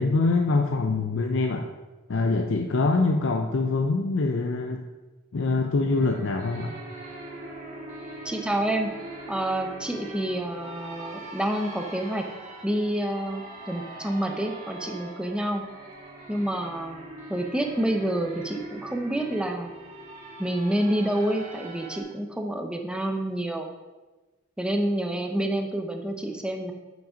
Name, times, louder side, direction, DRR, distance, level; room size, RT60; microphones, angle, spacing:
voice 1, 0.0-1.7 2.1-4.8 5.3-6.7, left 3 dB, 65° left, 4 dB, 0.6 m, -24 dB
sound 1, 5.8-22.0, right 1 dB, 40° right, 1.7 m, -42 dB
voice 2, 8.2-8.9 9.3-12.3 12.6-15.6 16.3-17.0 17.3-19.7 20.4-23.7 24.6-26.7, right 1 dB, 5° right, 3 dB, 0.8 m, -28 dB
7.7 x 6.2 x 5.0 m, 1.2 s
head